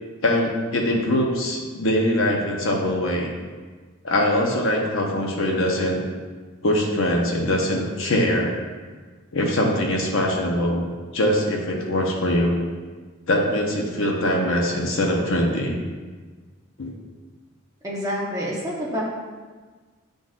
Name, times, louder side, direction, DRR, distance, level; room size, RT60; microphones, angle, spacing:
voice 1, 0.2-3.3 4.0-6.0 6.6-8.5 9.3-10.9 11.1-12.5 13.3-15.8 16.8-16.9, left 1 dB, 65° left, -1 dB, 0.9 m, -22 dB
voice 2, 17.8-19.0, equal, 15° right, -5 dB, 1.0 m, -27 dB
10.0 x 3.9 x 2.5 m, 1.4 s
head